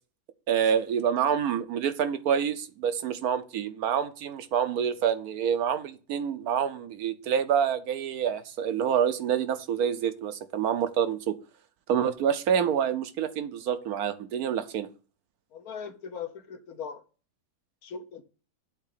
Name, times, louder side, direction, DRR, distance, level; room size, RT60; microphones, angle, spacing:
voice 1, 0.5-11.3 11.9-14.9, right 8 dB, 75° right, 1.2 m, -27 dB
voice 2, 15.5-17.0 17.8-18.2, left 6 dB, 70° left, 1.5 m, -39 dB
8.4 x 3.7 x 6.6 m
omnidirectional pair, 1.7 m